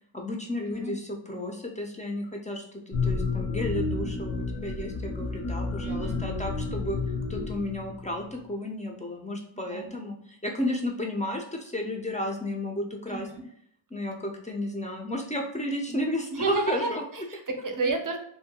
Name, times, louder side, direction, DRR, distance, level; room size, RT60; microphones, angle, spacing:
voice 1, 0.1-7.0 7.3-13.3 13.9-17.0, left 1 dB, 15° left, 1 dB, 0.4 m, -33 dB
sound 1, 2.9-8.3, left 4 dB, 70° left, 0.6 m, -31 dB
voice 2, 5.8-6.2 9.7-9.9 13.1-13.4 15.9-16.0 16.3-18.2, right 3 dB, 40° right, 4 dB, 0.5 m, -31 dB
2.6 x 2.1 x 2.7 m, 0.68 s
wide cardioid pair, 80°, 49 cm